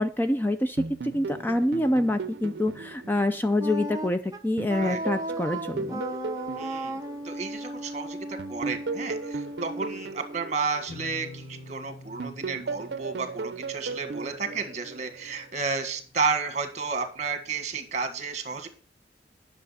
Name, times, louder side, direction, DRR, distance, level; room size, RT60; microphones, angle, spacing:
voice 1, 0.0-6.0, left 1 dB, 10° left, 8 dB, 0.4 m, -26 dB
sound 1, 0.8-4.1 4.6-7.8 8.4-11.7 12.2-15.4, right 4 dB, 70° right, 0.6 m, -37 dB
Wind instrument woodwind instrument, 3.6-10.5, right 1 dB, 20° right, 0.9 m, -36 dB
voice 2, 6.6-18.7, right 4 dB, 40° right, 6 dB, 1.7 m, -32 dB
sound 2, 10.9-16.5, left 1 dB, 90° left, 3.1 m, -48 dB
10.0 x 6.6 x 5.7 m, 0.42 s
head